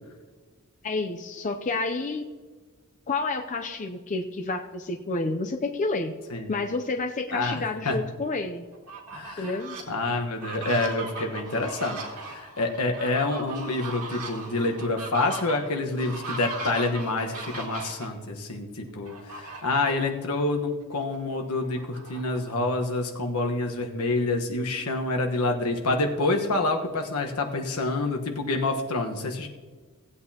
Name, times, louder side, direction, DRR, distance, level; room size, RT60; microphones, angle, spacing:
voice 1, 0.8-2.3 3.1-6.1 6.5-8.6 9.4-9.8, left 3 dB, 35° left, 4 dB, 0.5 m, -29 dB
voice 2, 7.3-8.0 9.1-9.6 9.9-12.0 12.3-29.5, left 2 dB, 75° left, 3 dB, 1.3 m, -27 dB
Fowl, 8.7-9.8 10.3-18.1 19.0-20.1 20.5-20.6 21.0-22.7, right 3 dB, 80° right, 1.9 m, -38 dB
17.5 x 8.5 x 2.9 m, 1.4 s
head